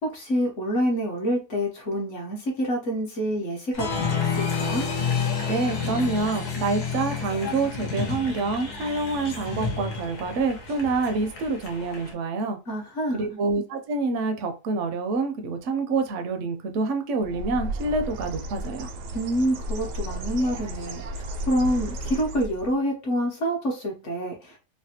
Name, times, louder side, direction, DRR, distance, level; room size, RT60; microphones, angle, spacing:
voice 1, 0.0-4.9 12.7-13.3 19.1-24.6, equal, 55° left, 0 dB, 1.0 m, -27 dB
Applause, 3.7-12.1, left 6 dB, 75° left, 1.3 m, -30 dB
voice 2, 5.5-12.6 13.1-18.9, right 3 dB, 65° right, 6 dB, 0.7 m, -27 dB
Bird, 17.2-22.8, right 1 dB, 85° right, 1.2 m, -34 dB
3.2 x 2.2 x 2.7 m, 0.29 s
omnidirectional pair, 1.7 m